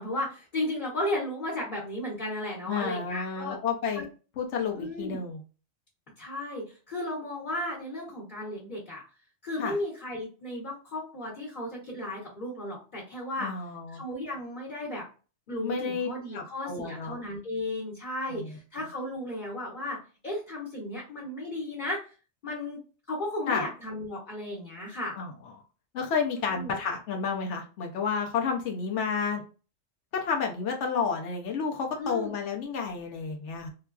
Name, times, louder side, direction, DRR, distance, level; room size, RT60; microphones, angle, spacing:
voice 1, 0.0-3.6 3.9-4.0 4.7-5.2 6.2-9.0 9.4-13.5 13.9-15.0 15.5-22.0 22.4-22.8 23.1-25.2 26.5-26.7 32.0-32.3, left 1 dB, 50° left, -6 dB, 1.1 m, -34 dB
voice 2, 2.7-4.0 4.4-5.4 9.6-9.8 13.4-14.0 15.6-17.2 18.3-18.5 23.5-23.6 25.2-25.5 25.9-29.4 30.1-33.7, left 5 dB, 85° left, 2 dB, 0.9 m, -31 dB
3.7 x 2.3 x 2.3 m, 0.35 s
omnidirectional pair, 1.2 m